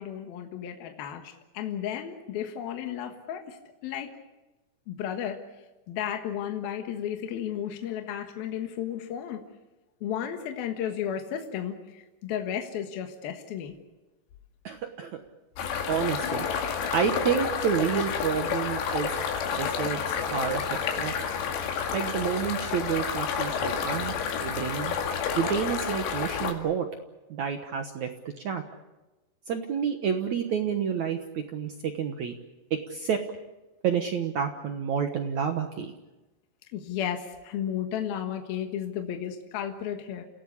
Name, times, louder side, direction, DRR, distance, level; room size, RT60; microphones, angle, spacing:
voice 1, 0.0-3.6 3.8-4.1 4.9-5.4 5.9-9.4 10.0-13.7 36.7-40.2, left 9 dB, 65° left, 5 dB, 3.2 m, -33 dB
voice 2, 14.6-15.1 15.9-16.5 16.9-19.1 19.5-20.0 20.3-20.6 21.0-21.3 21.9-25.0 25.4-26.9 27.3-28.1 28.4-28.6 29.5-32.3 32.7-33.2 33.8-35.9, right 7 dB, 65° right, 5 dB, 1.9 m, -29 dB
sound 1, 15.6-26.5, left 7 dB, 90° left, 4.4 m, -30 dB
29.0 x 17.0 x 8.4 m, 1.1 s
omnidirectional pair, 4.9 m